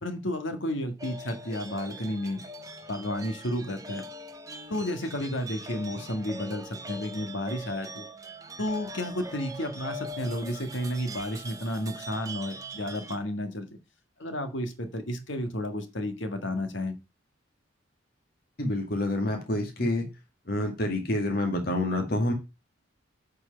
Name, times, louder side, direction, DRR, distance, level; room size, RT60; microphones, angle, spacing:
voice 1, 0.0-2.4 2.9-4.0 4.7-8.1 8.6-13.7 14.2-16.9, left 1 dB, 70° left, 7 dB, 1.7 m, -32 dB
sound 1, 1.0-13.2, right 1 dB, 15° right, 0.8 m, -42 dB
voice 2, 18.6-20.1 20.5-22.3, left 1 dB, 50° left, 3 dB, 1.9 m, -27 dB
8.5 x 4.7 x 5.6 m, 0.26 s
head